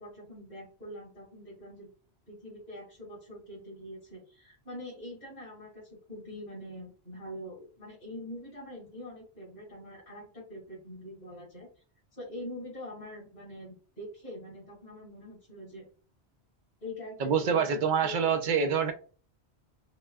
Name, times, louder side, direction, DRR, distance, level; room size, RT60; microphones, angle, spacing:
voice 1, 0.0-1.9 2.3-11.7 12.1-15.9 16.8-18.9, left 1 dB, 55° left, 2.4 m, -44 dB
voice 2, 17.2-18.9, right 6 dB, 55° right, 0.7 m, -26 dB
5.7 x 2.2 x 2.3 m
omnidirectional pair, 1.1 m